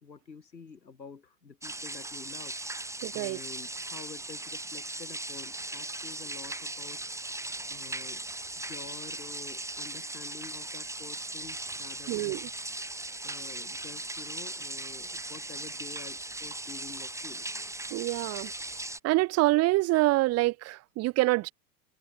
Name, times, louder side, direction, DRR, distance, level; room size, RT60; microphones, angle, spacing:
voice 1, 0.0-7.0 7.7-8.2 8.5-12.5 13.2-17.5, left 5 dB, 90° left, 4.7 m, -48 dB
sound 1, 1.6-19.0, right 2 dB, 5° right, 3.5 m, -38 dB
voice 2, 3.0-3.4 12.1-12.5 17.9-18.5 19.0-21.5, right 20 dB, 30° right, 0.7 m, -26 dB
hypercardioid pair, 95°, 50 cm